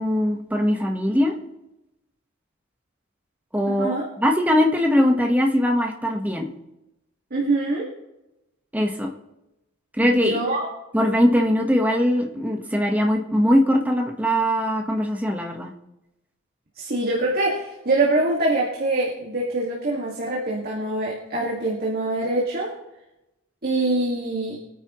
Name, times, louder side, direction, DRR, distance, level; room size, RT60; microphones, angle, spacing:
voice 1, 0.0-1.3 3.5-6.5 8.7-9.1 10.0-10.4 10.9-15.7, equal, 10° right, 2 dB, 1.3 m, -21 dB
voice 2, 7.3-7.9 10.0-10.7 16.8-22.8 23.6-24.6, right 2 dB, 45° right, -4 dB, 2.1 m, -24 dB
24.5 x 9.3 x 3.1 m, 0.94 s
head